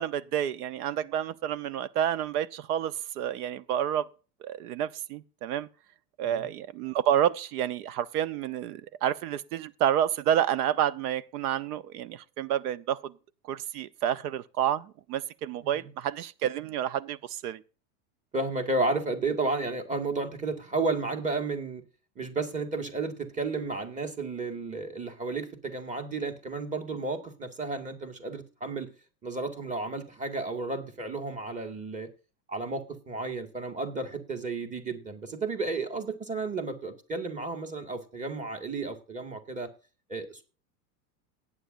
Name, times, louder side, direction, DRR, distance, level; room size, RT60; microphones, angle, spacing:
voice 1, 0.0-4.1 4.4-5.7 6.2-13.1 13.4-17.6, right 10 dB, 70° right, 1.0 m, -29 dB
voice 2, 18.3-21.8 22.2-28.9 29.2-32.1 32.5-39.7 40.1-40.4, right 3 dB, 15° right, 2.1 m, -32 dB
18.0 x 8.8 x 2.6 m
supercardioid pair, 125°, 47 cm